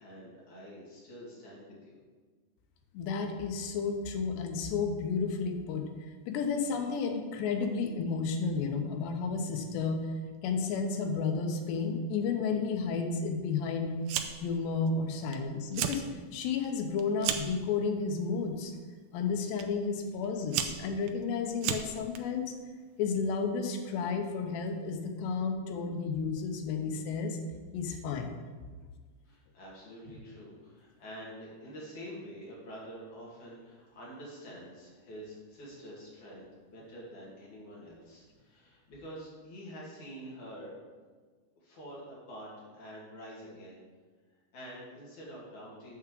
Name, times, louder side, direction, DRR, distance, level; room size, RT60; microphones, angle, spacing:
voice 1, 0.0-2.0 29.2-40.7 41.6-43.8 44.5-46.0, equal, 50° left, -6 dB, 3.8 m, -47 dB
voice 2, 2.9-5.9 6.3-10.1 10.4-13.9 14.4-16.0 16.3-18.7 19.1-22.5 23.0-27.4 27.7-28.4, left 5 dB, 85° left, 4 dB, 3.2 m, -32 dB
Fire, 14.1-14.6 14.9-15.4 15.6-16.0 16.4-17.6 18.4-18.7 19.6-19.7 20.2-22.2, right 10 dB, 85° right, 2.2 m, -33 dB
9.5 x 4.9 x 7.5 m, 1.5 s
omnidirectional pair, 4.9 m